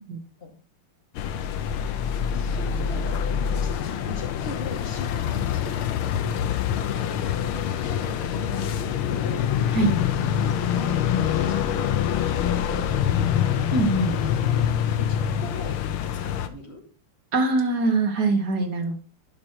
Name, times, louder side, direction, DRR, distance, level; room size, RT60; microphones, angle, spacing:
sound 1, 1.1-16.5, left 9 dB, 75° left, 1.6 m, -25 dB
voice 1, 2.3-6.1 6.7-7.1 7.8-9.5 10.6-12.2 12.5-13.6 14.5-16.8, left 2 dB, 30° left, -1 dB, 2.5 m, -39 dB
voice 2, 13.7-14.2 17.3-18.9, right 3 dB, 50° right, 4 dB, 1.7 m, -22 dB
11.0 x 5.2 x 4.5 m, 0.38 s
omnidirectional pair, 2.3 m